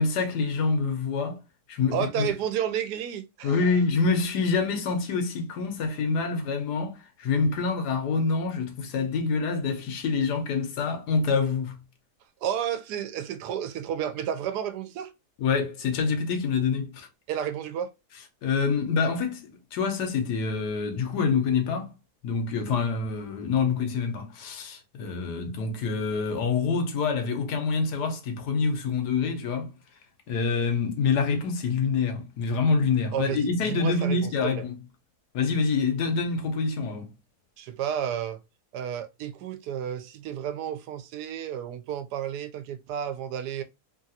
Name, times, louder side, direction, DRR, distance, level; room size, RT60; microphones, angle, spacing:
voice 1, 0.0-1.4 1.7-2.3 3.4-11.8 15.4-17.1 18.4-21.9 22.2-29.7 30.3-34.8 35.3-37.1, left 4 dB, 80° left, 1.4 m, -26 dB
voice 2, 1.9-3.5 12.4-15.1 17.3-17.9 33.1-33.4 33.7-34.6 37.6-38.4 38.7-43.6, right 9 dB, 80° right, 1.1 m, -31 dB
3.3 x 2.4 x 2.7 m
omnidirectional pair, 1.7 m